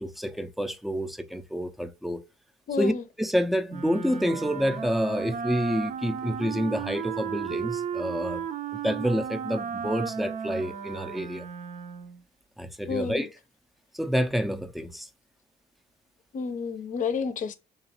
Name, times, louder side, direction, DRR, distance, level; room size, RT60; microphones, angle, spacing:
voice 1, 0.0-2.2 2.8-8.4 8.8-11.5 12.6-13.3 13.9-15.1, equal, ahead, 0.5 m, -28 dB
voice 2, 2.7-3.0 12.9-13.3 16.3-17.5, left 5 dB, 50° left, 0.7 m, -30 dB
Wind instrument woodwind instrument, 3.7-12.2, right 7 dB, 50° right, 0.6 m, -34 dB
3.8 x 3.1 x 2.9 m
cardioid pair, 110°, 17 cm